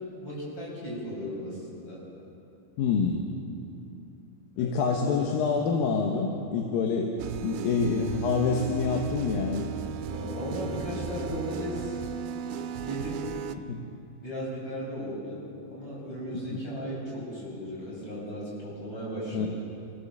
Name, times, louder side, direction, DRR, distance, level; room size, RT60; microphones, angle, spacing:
voice 1, 0.2-2.0 4.6-5.2 10.1-12.0 12.8-13.2 14.2-19.5, equal, 30° left, -6 dB, 8.1 m, -36 dB
voice 2, 2.8-3.2 4.6-9.7 13.6-13.8 16.3-16.6 19.3-19.5, left 5 dB, 75° left, 2 dB, 3.0 m, -27 dB
sound 1, 7.2-13.6, right 7 dB, 90° right, 2.7 m, -35 dB
28.5 x 16.0 x 7.3 m, 2.8 s
omnidirectional pair, 4.2 m